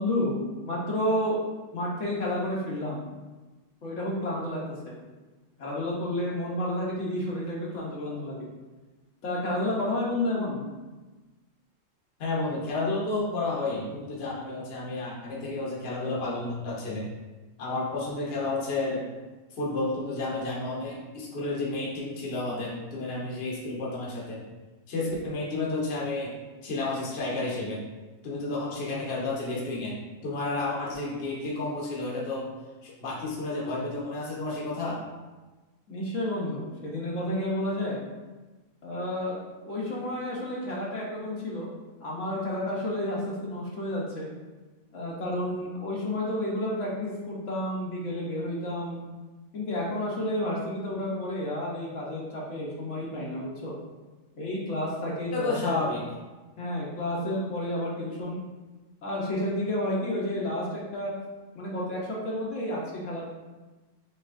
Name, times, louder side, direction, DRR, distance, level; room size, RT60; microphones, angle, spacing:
voice 1, 0.0-1.4 1.7-3.0 3.8-4.9 5.6-8.5 9.2-10.7 35.9-38.1 38.8-39.4 39.6-41.7 42.0-44.3 44.9-49.0 49.5-53.7 54.4-55.8 56.6-58.4 59.0-61.1 61.5-63.3, left 1 dB, 70° left, -5 dB, 1.3 m, -31 dB
voice 2, 12.2-17.1 17.6-19.0 19.5-24.4 24.9-27.8 28.2-29.9 30.2-32.5 32.8-35.0 55.3-56.0, left 2 dB, 55° left, -5 dB, 1.2 m, -31 dB
6.4 x 3.0 x 2.5 m, 1.2 s
omnidirectional pair, 1.3 m